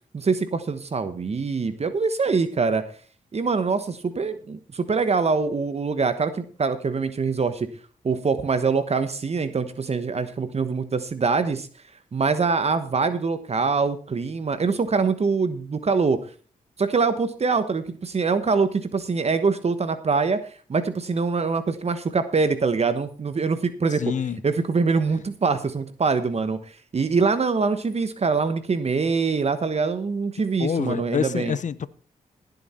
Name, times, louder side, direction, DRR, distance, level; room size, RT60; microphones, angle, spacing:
voice 1, 0.1-2.8 3.3-7.7 8.0-11.7 12.1-16.2 16.8-24.1 24.4-26.6 26.9-31.6, right 4 dB, 45° right, 1.2 m, -24 dB
voice 2, 24.0-24.4 30.6-31.9, left 7 dB, 60° left, 0.8 m, -26 dB
16.5 x 8.0 x 4.4 m
cardioid pair, 60°, 14 cm